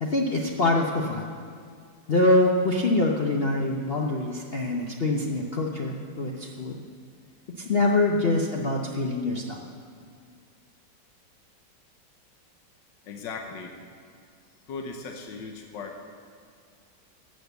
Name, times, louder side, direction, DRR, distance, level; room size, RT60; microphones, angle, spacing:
voice 1, 0.0-1.3 2.1-6.8 7.6-9.7, left 2 dB, 45° left, 0 dB, 0.8 m, -24 dB
voice 2, 13.0-13.7 14.7-16.0, left 4 dB, 90° left, 3 dB, 1.7 m, -37 dB
13.0 x 7.7 x 8.0 m, 2.2 s
omnidirectional pair, 1.9 m